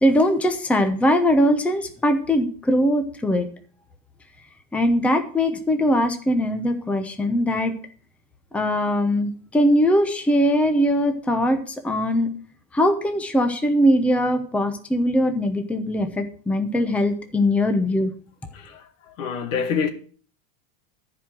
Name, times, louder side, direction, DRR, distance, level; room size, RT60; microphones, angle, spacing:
voice 1, 0.0-3.5 4.7-7.7 8.5-12.3 12.7-18.1, equal, 5° left, 0.8 m, -21 dB
voice 2, 19.2-19.9, left 6 dB, 75° left, 2.1 m, -25 dB
14.0 x 4.9 x 7.6 m
supercardioid pair, 155°, 40 cm